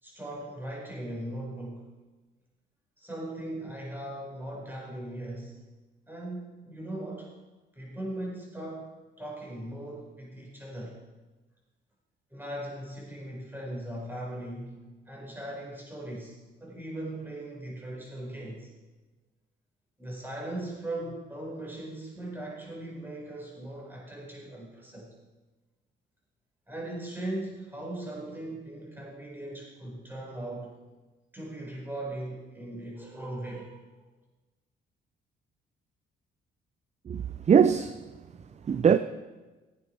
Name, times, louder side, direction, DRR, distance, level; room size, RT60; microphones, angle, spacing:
voice 1, 0.0-1.9 3.0-5.6 6.1-7.3 7.7-8.9 9.2-11.0 12.3-14.8 15.1-18.7 20.0-25.1 26.7-30.8 31.3-33.9, right 1 dB, 10° right, 4.8 m, -39 dB
voice 2, 37.1-38.0 38.7-39.0, right 7 dB, 35° right, 0.5 m, -21 dB
16.5 x 8.7 x 4.6 m
cardioid pair, 90°, 20 cm